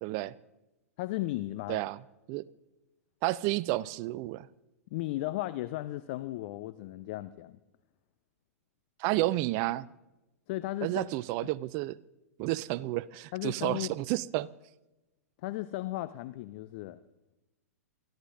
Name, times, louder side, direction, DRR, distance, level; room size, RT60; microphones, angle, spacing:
voice 1, 0.0-0.3 1.7-2.0 2.3-2.5 3.2-4.5 9.0-9.9 10.8-12.0 12.4-14.5, right 17 dB, 35° right, 0.4 m, -31 dB
voice 2, 1.0-1.8 4.9-7.6 10.5-11.1 11.4-11.5 13.3-13.9 15.4-17.0, left 16 dB, 40° left, 0.5 m, -35 dB
25.0 x 14.0 x 2.6 m
figure-of-eight pair, 105°, 8 cm